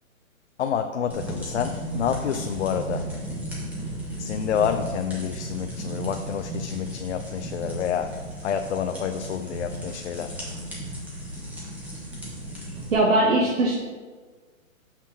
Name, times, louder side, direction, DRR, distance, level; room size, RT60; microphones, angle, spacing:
voice 1, 0.6-3.2 4.2-10.4, left 8 dB, 55° left, 7 dB, 0.5 m, -28 dB
sound 1, 1.1-12.9, right 1 dB, 5° right, 0.9 m, -35 dB
voice 2, 12.9-13.8, right 2 dB, 65° right, -3 dB, 1.5 m, -20 dB
5.8 x 5.7 x 4.4 m, 1.4 s
hypercardioid pair, 145°, 41 cm